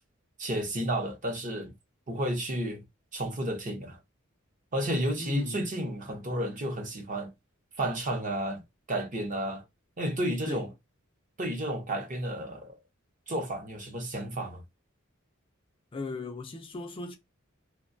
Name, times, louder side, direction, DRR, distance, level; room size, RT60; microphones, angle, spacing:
voice 1, 0.4-1.7 2.1-2.8 3.1-4.0 4.7-7.3 7.8-8.6 8.9-9.6 10.0-10.7 11.4-12.8 13.3-14.6, right 1 dB, 40° right, 0.7 m, -32 dB
voice 2, 5.2-5.7 10.5-10.7 15.9-17.2, left 2 dB, 25° left, 0.4 m, -37 dB
2.5 x 2.2 x 2.5 m
head